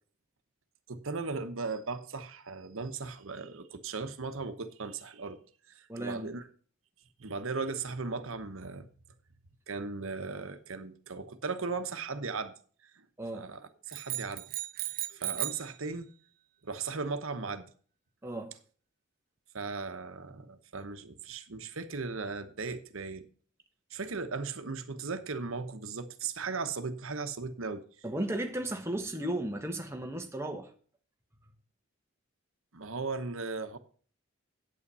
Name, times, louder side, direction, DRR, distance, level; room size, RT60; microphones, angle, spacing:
voice 1, 0.9-5.4 5.7-6.5 7.2-8.9 9.7-12.5 12.8-12.9 13.3-14.4 14.8-16.1 16.6-17.7 19.5-23.3 23.9-27.8 32.7-33.8, right 4 dB, 70° right, 1.0 m, -37 dB
voice 2, 5.9-6.3 13.2-13.5 18.2-18.5 28.0-30.7, right 1 dB, 10° right, 1.2 m, -35 dB
sound 1, 13.9-15.7, right 15 dB, 40° right, 0.4 m, -36 dB
8.7 x 8.5 x 5.5 m
head